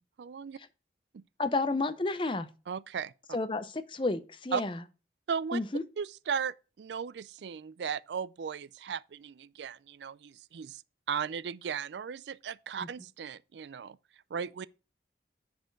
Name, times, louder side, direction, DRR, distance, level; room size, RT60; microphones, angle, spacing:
voice 1, 0.2-0.6 1.1-1.2 2.7-3.1 4.5-4.6 5.3-5.6 6.0-10.8 11.1-14.0 14.3-14.7, right 7 dB, 80° right, 0.4 m, -36 dB
voice 2, 1.4-2.5 3.3-4.8 5.5-5.8 12.8-12.9, left 2 dB, 30° left, 0.6 m, -31 dB
10.5 x 4.3 x 4.6 m
head